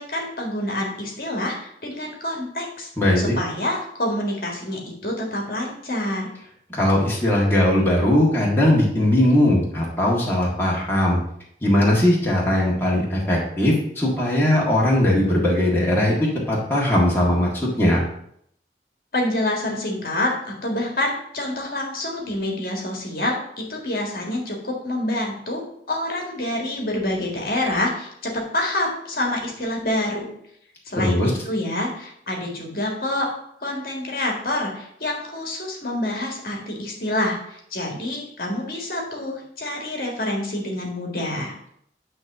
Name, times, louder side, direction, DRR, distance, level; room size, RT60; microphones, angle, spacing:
voice 1, 0.0-6.3 19.1-30.3 30.9-33.3 33.6-41.5, left 1 dB, 55° left, 0 dB, 1.8 m, -27 dB
voice 2, 3.0-3.4 6.7-11.2 11.6-16.2 16.5-17.5 17.8-18.1 31.0-31.3, left 1 dB, 10° left, -5 dB, 1.8 m, -19 dB
9.6 x 3.2 x 6.6 m, 0.70 s
head